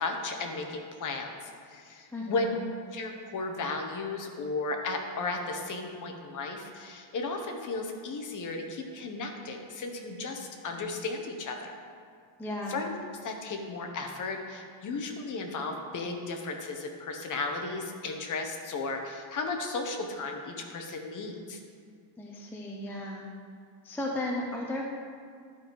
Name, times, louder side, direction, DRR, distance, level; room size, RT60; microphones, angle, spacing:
voice 1, 0.0-2.6 2.9-11.8 12.7-12.9 13.2-21.6, left 3 dB, 40° left, 3 dB, 0.9 m, -35 dB
voice 2, 2.1-2.6 12.4-12.8 22.2-23.3 23.8-24.8, left 1 dB, 5° left, -1 dB, 0.4 m, -35 dB
11.5 x 5.3 x 4.6 m, 2.2 s
cardioid pair, 175°, 49 cm